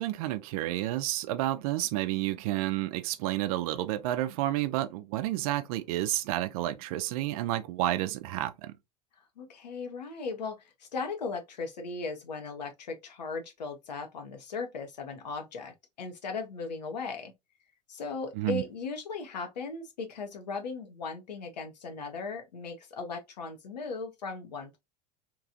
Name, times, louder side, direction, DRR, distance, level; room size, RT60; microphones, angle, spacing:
voice 1, 0.0-8.7 18.3-18.6, right 15 dB, 60° right, 0.5 m, -30 dB
voice 2, 9.4-17.3 17.9-24.8, left 4 dB, 80° left, 0.8 m, -37 dB
3.0 x 2.4 x 2.6 m
hypercardioid pair, 80°, 21 cm